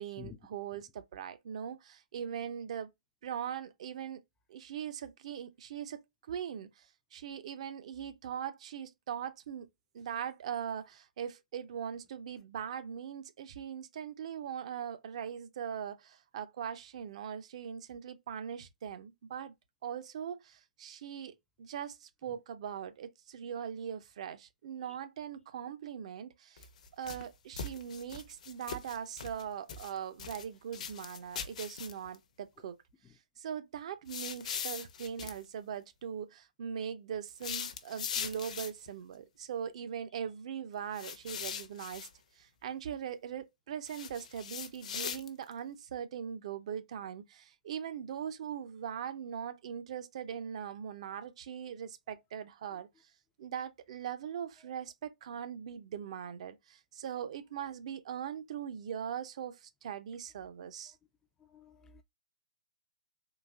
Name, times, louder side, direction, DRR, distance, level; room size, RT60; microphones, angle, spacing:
voice 1, 0.0-2.9 3.2-4.2 4.5-6.0 6.3-9.7 9.9-19.5 19.8-26.7 26.9-32.8 33.4-42.1 42.4-53.1 53.4-60.9, right 8 dB, 45° right, 0.5 m, -41 dB
sound 1, 26.6-27.3 27.6-29.4 29.7-30.5 30.7-32.2 34.1-35.4 37.3-38.9 40.9-42.1 43.9-45.5, left 7 dB, 50° left, 0.7 m, -40 dB
voice 2, 61.4-62.0, left 7 dB, 10° left, 0.3 m, -50 dB
3.9 x 2.5 x 2.3 m
figure-of-eight pair, 135°, 5 cm